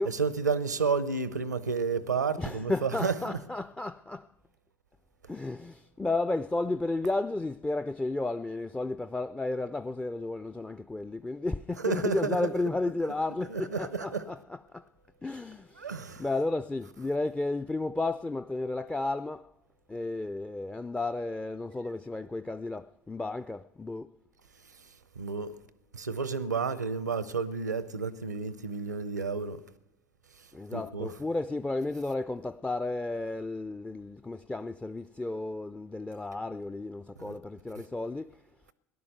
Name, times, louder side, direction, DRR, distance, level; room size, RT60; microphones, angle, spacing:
voice 1, 0.0-3.4 11.8-12.5 13.5-14.2 15.8-16.2 25.2-25.5 25.9-29.6 30.7-31.1 37.2-37.4, right 5 dB, 90° right, 0.7 m, -31 dB
voice 2, 2.4-4.3 5.3-14.8 15.2-15.9 16.2-19.5 19.9-24.2 30.5-38.3, left 2 dB, 10° left, 0.4 m, -33 dB
17.0 x 11.0 x 6.6 m
figure-of-eight pair, 65°, 9 cm